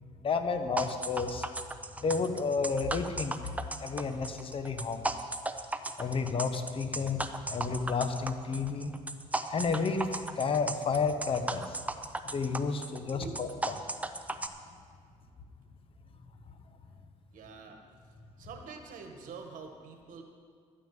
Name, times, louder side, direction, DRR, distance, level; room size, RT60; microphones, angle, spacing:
voice 1, 0.0-1.5 2.0-3.3 3.8-5.1 6.0-8.9 9.5-11.8 12.2-13.5, left 5 dB, 40° left, 7 dB, 1.0 m, -31 dB
sound 1, 0.8-14.5, right 2 dB, 10° right, 0.6 m, -36 dB
voice 2, 13.1-14.3 17.3-17.8 18.4-20.2, right 4 dB, 75° right, 3 dB, 1.5 m, -46 dB
12.5 x 6.3 x 8.9 m, 2.1 s
cardioid pair, 120°, 14 cm